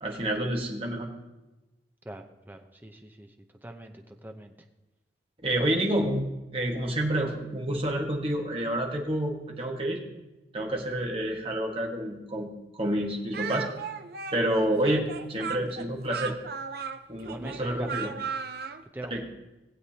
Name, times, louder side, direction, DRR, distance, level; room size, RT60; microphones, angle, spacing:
voice 1, 0.0-1.1 5.4-10.0 10.5-12.5 12.7-13.7 14.3-16.4 17.1-18.1 19.1-19.2, right 1 dB, 30° right, 0 dB, 1.6 m, -28 dB
voice 2, 2.0-3.3 3.6-4.5 17.2-18.1 18.9-19.4, right 1 dB, 10° right, 5 dB, 0.8 m, -42 dB
Speech, 13.3-18.8, right 6 dB, 60° right, 0.6 m, -36 dB
19.0 x 8.0 x 2.9 m, 1.0 s
head